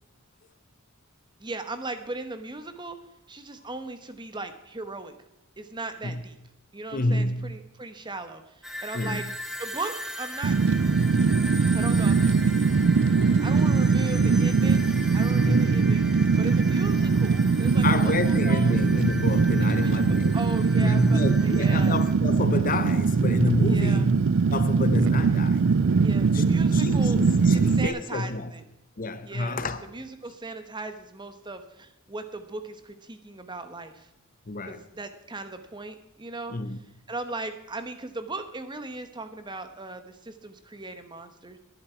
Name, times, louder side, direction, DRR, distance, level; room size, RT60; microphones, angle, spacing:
voice 1, 1.4-3.0 3.3-5.1 5.6-6.4 6.7-9.2 9.6-10.8 11.7-12.6 13.1-16.1 16.4-18.8 19.6-22.0 23.7-24.1 26.0-27.2 27.5-28.6 29.2-29.6 29.9-34.1 34.7-36.6 37.1-41.6, right 2 dB, 20° right, 1.2 m, -38 dB
voice 2, 6.9-7.6 8.9-9.3 15.4-15.8 17.8-20.3 20.7-25.8 26.3-28.5 29.0-29.8 34.5-34.8 36.5-36.8, left 1 dB, 40° left, 0.9 m, -28 dB
sound 1, 8.6-22.1, equal, ahead, 1.7 m, -39 dB
Fire, 10.4-27.9, right 4 dB, 60° right, 0.5 m, -22 dB
20.0 x 11.0 x 4.6 m
head